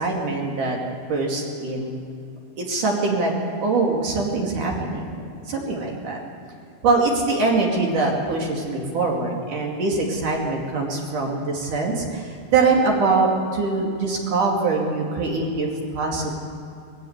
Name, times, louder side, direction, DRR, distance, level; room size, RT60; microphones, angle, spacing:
voice 1, 0.0-2.0 2.6-3.3 3.6-6.2 6.8-16.3, right 3 dB, 60° right, -1 dB, 3.8 m, -23 dB
21.5 x 16.0 x 8.0 m, 2.6 s
omnidirectional pair, 4.3 m